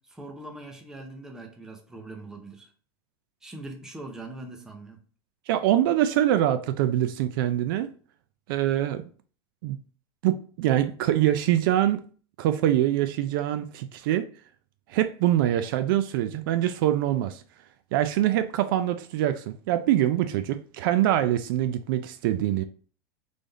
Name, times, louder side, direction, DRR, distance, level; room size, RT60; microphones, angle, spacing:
voice 1, 0.1-2.7 3.4-5.0, right 2 dB, 5° right, 0.6 m, -41 dB
voice 2, 5.5-7.9 8.5-9.0 9.6-9.8 10.2-12.0 12.4-14.3 14.9-17.4 17.9-22.6, right 12 dB, 55° right, 0.4 m, -24 dB
3.8 x 3.4 x 4.0 m
supercardioid pair, 170°, 14 cm